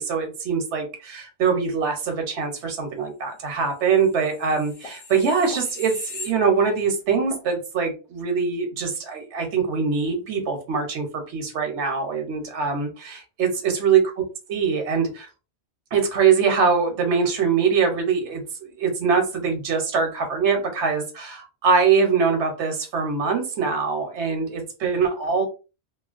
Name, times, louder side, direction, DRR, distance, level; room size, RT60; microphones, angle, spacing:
voice 1, 0.0-14.0 14.5-15.3 15.9-25.4, right 5 dB, 85° right, 5 dB, 1.0 m, -23 dB
sound 1, 4.0-6.9 7.3-7.5, left 3 dB, 40° left, 0.6 m, -39 dB
3.0 x 2.2 x 2.4 m, 0.31 s
omnidirectional pair, 1.1 m